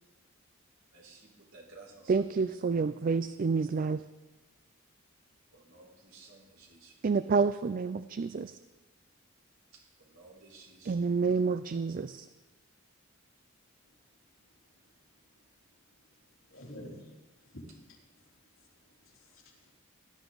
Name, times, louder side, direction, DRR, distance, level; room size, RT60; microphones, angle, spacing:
voice 1, 0.9-2.5 5.5-7.0 10.0-11.0, right 3 dB, 85° right, -2 dB, 4.5 m, -55 dB
voice 2, 2.1-4.0 7.0-8.6 10.9-12.3, right 4 dB, 45° right, 13 dB, 0.4 m, -29 dB
voice 3, 16.5-19.7, equal, 80° left, -3 dB, 3.6 m, -51 dB
18.0 x 12.5 x 4.0 m, 1.2 s
head